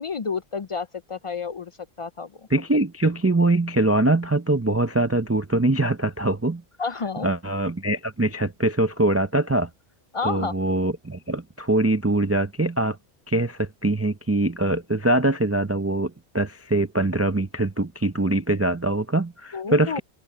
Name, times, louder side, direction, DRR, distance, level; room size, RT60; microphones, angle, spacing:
voice 1, 0.0-1.7 2.0-2.3 6.8-7.3 10.1-10.5 19.5-20.0, left 5 dB, 50° left, 0.4 m, -30 dB
voice 2, 2.5-6.6 7.2-9.7 10.2-13.0 13.3-20.0, right 2 dB, 20° right, 0.4 m, -23 dB
open air
omnidirectional pair, 1.1 m